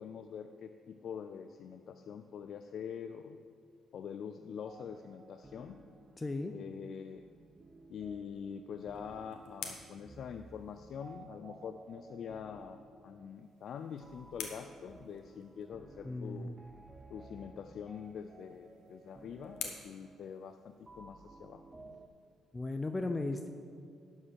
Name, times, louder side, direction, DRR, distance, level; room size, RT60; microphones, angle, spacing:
voice 1, 0.0-3.4 3.9-5.8 6.5-7.3 7.9-16.6 17.1-22.0, left 7 dB, 65° left, 8 dB, 0.4 m, -45 dB
sound 1, 4.7-22.1, right 3 dB, 25° right, 0.6 m, -56 dB
voice 2, 6.2-6.5 16.0-16.5 22.5-23.5, left 2 dB, 20° left, 6 dB, 0.5 m, -36 dB
sound 2, 8.7-11.2 13.3-15.7 18.0-21.1, left 7 dB, 90° left, 1.1 m, -49 dB
11.5 x 5.4 x 6.3 m, 2.1 s
cardioid pair, 90°, 0 cm